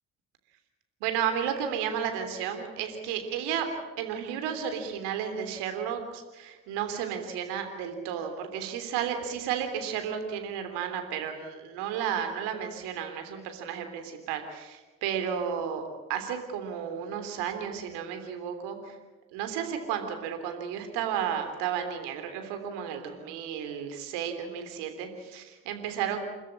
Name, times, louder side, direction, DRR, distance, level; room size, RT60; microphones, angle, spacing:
voice 1, 1.0-3.7 4.0-19.0 19.3-26.2, right 8 dB, 80° right, 6 dB, 3.4 m, -33 dB
29.5 x 13.5 x 9.8 m, 1.2 s
hypercardioid pair, 45°, 40 cm